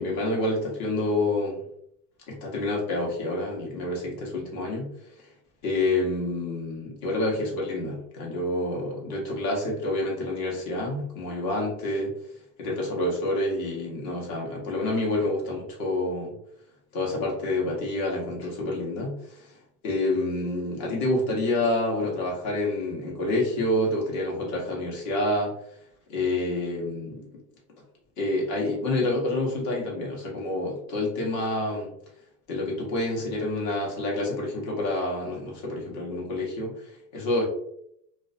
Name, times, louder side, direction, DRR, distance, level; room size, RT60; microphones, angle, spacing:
voice 1, 0.0-1.6 2.3-4.9 5.6-12.1 12.6-16.3 16.9-19.5 19.8-25.5 26.1-27.2 28.2-31.9 32.5-37.5, left 2 dB, 45° left, -2 dB, 1.0 m, -28 dB
2.3 x 2.1 x 2.4 m, 0.73 s
supercardioid pair, 125°, 49 cm